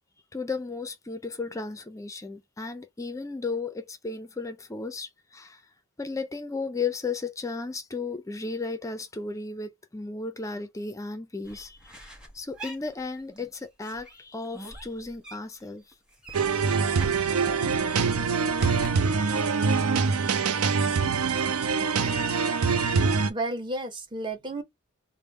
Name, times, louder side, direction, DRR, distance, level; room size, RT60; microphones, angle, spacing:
voice 1, 0.3-5.6 6.0-12.0 12.3-15.8, left 4 dB, 15° left, 0.4 m, -34 dB
sound 1, 11.4-13.5 13.8-15.7 15.9-18.9, equal, 5° right, 1.0 m, -44 dB
sound 2, 16.3-23.3, right 5 dB, 80° right, 0.5 m, -24 dB
voice 2, 22.7-24.6, right 2 dB, 20° right, 0.7 m, -33 dB
3.5 x 2.0 x 4.1 m
head